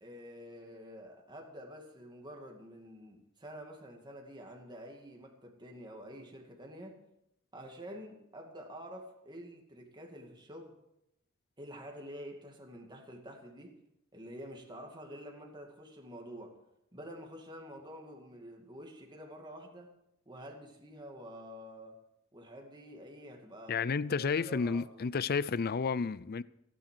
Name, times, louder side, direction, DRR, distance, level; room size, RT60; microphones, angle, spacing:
voice 1, 0.0-7.0 7.5-10.8 11.6-13.7 14.1-16.5 16.9-19.9 20.3-21.9 22.3-23.9 24.2-25.1, equal, 20° right, 2.3 m, -48 dB
voice 2, 23.7-26.4, left 5 dB, 50° left, 0.5 m, -31 dB
16.5 x 9.7 x 6.6 m
head